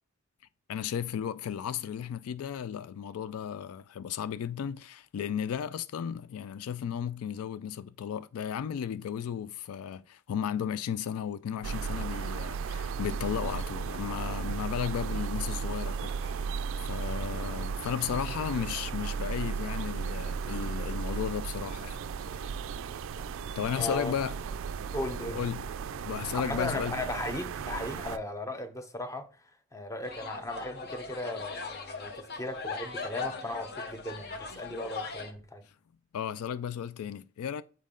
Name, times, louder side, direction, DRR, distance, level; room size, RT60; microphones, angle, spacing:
voice 1, 0.7-16.5 16.8-22.5 23.6-24.4 25.2-25.7 26.0-27.0 36.1-37.6, left 8 dB, 80° left, 0.3 m, -34 dB
sound 1, 11.6-28.2, right 6 dB, 65° right, 0.3 m, -35 dB
voice 2, 23.7-24.1 24.9-25.4 26.3-29.3 29.7-35.6, left 1 dB, 15° left, 0.8 m, -37 dB
sound 2, 30.0-35.3, left 4 dB, 50° left, 0.8 m, -39 dB
7.4 x 4.2 x 3.7 m
head